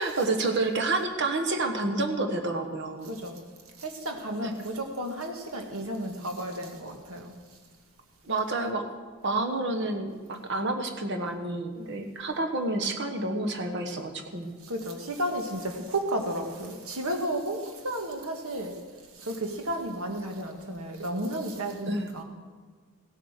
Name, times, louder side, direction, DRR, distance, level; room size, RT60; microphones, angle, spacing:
voice 1, 0.0-3.1 4.4-4.5 8.2-8.8 9.2-14.5 21.9-22.1, right 2 dB, 55° right, 5 dB, 1.3 m, -29 dB
voice 2, 3.0-3.4 3.8-7.3 14.6-18.8 19.2-22.2, right 1 dB, 75° right, 4 dB, 1.7 m, -33 dB
16.5 x 7.8 x 6.5 m, 1.5 s
head